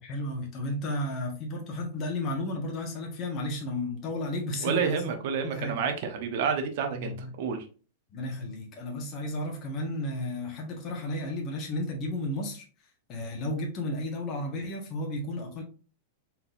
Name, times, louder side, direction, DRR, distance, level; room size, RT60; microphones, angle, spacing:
voice 1, 0.0-5.8 6.9-7.3 8.1-12.6 13.1-15.6, left 1 dB, 35° left, 1.5 m, -33 dB
voice 2, 4.6-7.6, right 6 dB, 60° right, 1.1 m, -29 dB
4.4 x 3.9 x 2.6 m
hypercardioid pair, 135°, 0 cm